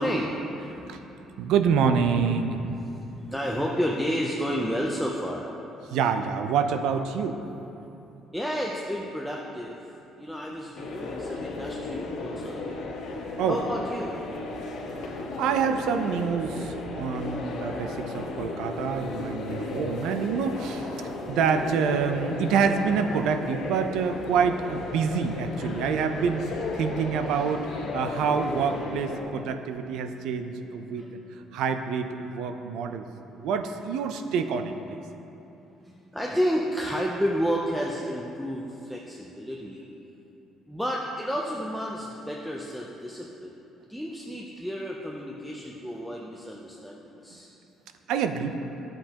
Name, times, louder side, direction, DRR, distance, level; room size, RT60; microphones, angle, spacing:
voice 1, 0.0-1.4 2.4-5.5 8.3-9.8 10.2-12.9 13.5-14.2 31.0-31.1 35.8-39.8 40.7-43.5 43.9-47.5, equal, ahead, -3 dB, 0.5 m, -31 dB
voice 2, 1.4-2.6 5.9-7.4 13.4-13.6 15.4-27.7 27.9-31.1 31.5-33.0 33.4-35.0 48.1-48.6, right 6 dB, 75° right, 8 dB, 0.5 m, -27 dB
sound 1, 10.8-29.2, left 3 dB, 65° left, 1.2 m, -35 dB
12.0 x 7.8 x 2.9 m, 2.9 s
cardioid pair, 160°, 0 cm